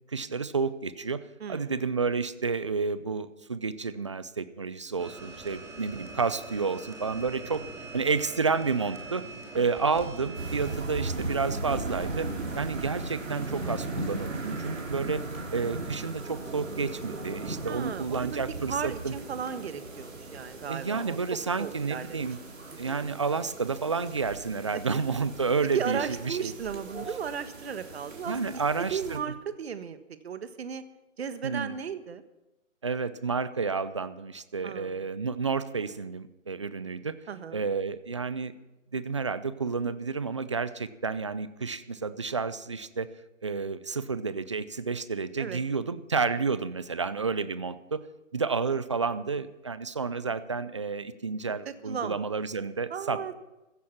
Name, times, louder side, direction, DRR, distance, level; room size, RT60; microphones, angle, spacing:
voice 1, 0.1-1.2 1.5-7.7 7.9-9.2 9.5-12.3 12.6-15.2 15.5-19.2 20.7-22.4 22.8-26.0 26.2-26.5 28.3-29.2 31.4-31.7 32.8-37.2 37.5-38.5 38.9-43.1 43.4-48.0 48.3-53.3, right 4 dB, 25° right, 15 dB, 0.4 m, -30 dB
voice 2, 1.4-1.7 17.6-21.2 21.6-22.2 24.7-24.8 25.7-28.4 28.8-30.0 30.2-30.8 31.2-32.2 34.6-35.1 37.3-37.7 45.4-45.6 51.6-52.2 52.9-53.3, right 7 dB, 50° right, 11 dB, 1.5 m, -35 dB
sound 1, 5.0-10.7, right 2 dB, 5° right, 2.4 m, -43 dB
sound 2, 10.3-29.2, right 2 dB, 75° right, 4.4 m, -38 dB
15.5 x 15.0 x 5.8 m, 0.97 s
figure-of-eight pair, 145°, 39 cm